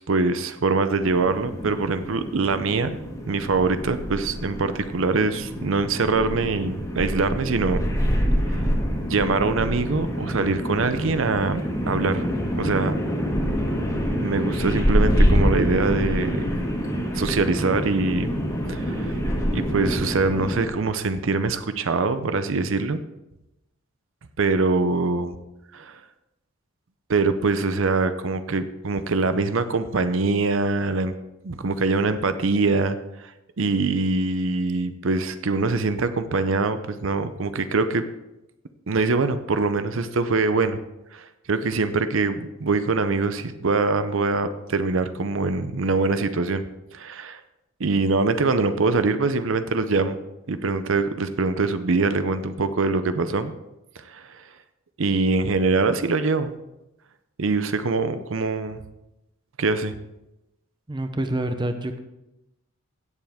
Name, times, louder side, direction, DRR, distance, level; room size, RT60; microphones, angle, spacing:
voice 1, 0.0-2.9 3.3-7.8 8.5-8.6 9.1-12.2 12.6-13.0 14.2-16.5 17.1-18.3 18.7-19.2 19.5-23.0 24.4-25.4 25.7-26.0 27.1-31.1 31.4-33.3 33.6-38.0 38.9-40.8 41.1-46.6 46.9-47.4 47.8-50.2 50.5-53.5 54.0-54.4 55.0-56.5 57.4-58.8 59.6-59.9, right 3 dB, 65° right, 11 dB, 0.6 m, -23 dB
sound 1, 1.0-20.7, equal, 15° left, 1.6 m, -26 dB
voice 2, 60.9-62.0, right 1 dB, 20° right, 8 dB, 0.6 m, -27 dB
16.5 x 7.1 x 3.6 m, 0.93 s
head